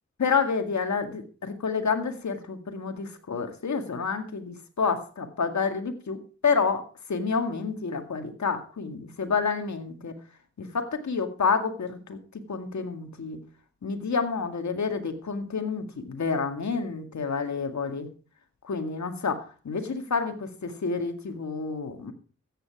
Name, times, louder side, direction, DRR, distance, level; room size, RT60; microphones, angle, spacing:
voice 1, 0.2-6.8 7.1-10.2 10.6-12.2 12.5-13.4 13.8-18.1 18.7-22.1, left 5 dB, 75° left, 7 dB, 2.1 m, -29 dB
14.0 x 9.2 x 4.8 m, 0.38 s
cardioid pair, 45°, 29 cm